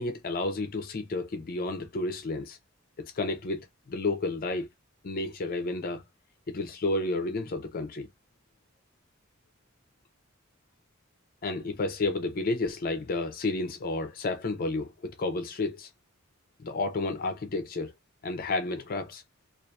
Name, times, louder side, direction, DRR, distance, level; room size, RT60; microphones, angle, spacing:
voice 1, 0.0-2.6 3.0-4.7 5.0-6.0 6.5-8.1 11.4-15.9 16.6-17.9 18.2-19.2, left 2 dB, 45° left, 0.4 m, -31 dB
2.6 x 2.3 x 2.2 m
head